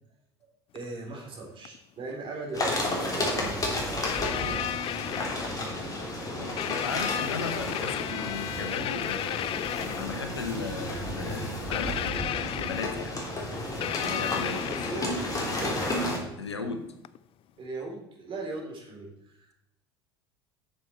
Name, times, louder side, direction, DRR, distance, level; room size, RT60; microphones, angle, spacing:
voice 1, 0.4-4.6 5.3-5.6 14.1-15.2 15.5-15.8 17.6-19.5, right 2 dB, 40° right, -1 dB, 3.5 m, -39 dB
sound 1, 0.7-0.8 1.6-1.8 3.4-3.5 4.0-5.7 6.6-10.2 11.7-13.2 13.8-15.3 17.0-17.2, left 12 dB, 40° left, 0.4 m, -33 dB
sound 2, 2.5-16.2, left 1 dB, 25° left, 3.1 m, -32 dB
voice 2, 6.4-13.1 14.0-14.6 16.4-16.8, left 4 dB, 90° left, 8 dB, 1.0 m, -37 dB
8.9 x 6.9 x 4.4 m, 0.84 s
hypercardioid pair, 70°, 14 cm